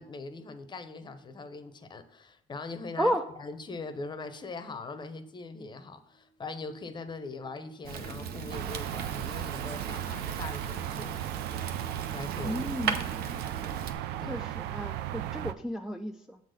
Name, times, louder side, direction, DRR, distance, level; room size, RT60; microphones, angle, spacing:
voice 1, 0.0-3.1 3.4-11.3 12.1-12.8 14.2-14.5, left 3 dB, 25° left, 10 dB, 0.7 m, -41 dB
sound 1, 6.1-14.1, right 2 dB, 80° left, 1.0 m, -54 dB
Fire, 7.8-13.9, right 6 dB, 65° right, 0.8 m, -37 dB
sound 2, 8.5-15.5, right 13 dB, 90° right, 0.4 m, -36 dB
voice 2, 12.4-13.0 14.3-16.4, equal, 5° right, 3 dB, 0.3 m, -32 dB
7.2 x 3.9 x 6.5 m, 0.75 s
cardioid pair, 110°, 17 cm